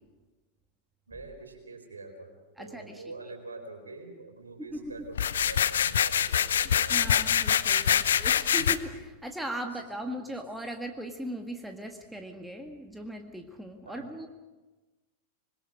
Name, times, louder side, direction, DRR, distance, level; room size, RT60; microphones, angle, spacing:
voice 1, 1.1-7.3 7.9-8.3 10.3-10.4 13.8-14.1, right 3 dB, 75° right, 4 dB, 4.4 m, -45 dB
voice 2, 2.6-3.0 4.7-4.9 6.6-14.3, right 1 dB, 5° right, 4 dB, 1.8 m, -39 dB
sound 1, 5.1-8.8, left 9 dB, 65° left, 0.7 m, -25 dB
26.0 x 21.5 x 5.0 m, 1.2 s
figure-of-eight pair, 90°, 0 cm